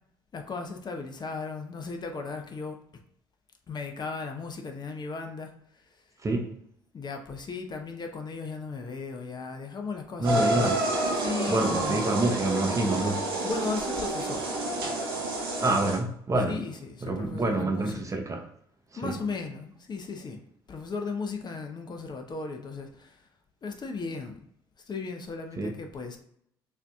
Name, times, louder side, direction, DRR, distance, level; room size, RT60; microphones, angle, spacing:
voice 1, 0.3-2.8 3.7-5.5 6.9-10.9 11.1-12.0 13.4-14.5 16.5-18.1 19.0-20.4 20.7-23.2 23.6-24.4 24.9-26.2, left 4 dB, 35° left, 0.8 m, -36 dB
voice 2, 6.2-6.5 10.2-10.8 11.5-13.3 15.6-16.6 17.0-18.4 19.0-19.2 25.6-25.7, right 2 dB, 25° right, 0.8 m, -27 dB
sound 1, 10.2-16.0, right 2 dB, 90° right, 1.0 m, -29 dB
6.6 x 2.7 x 2.3 m
hypercardioid pair, 55°, 12 cm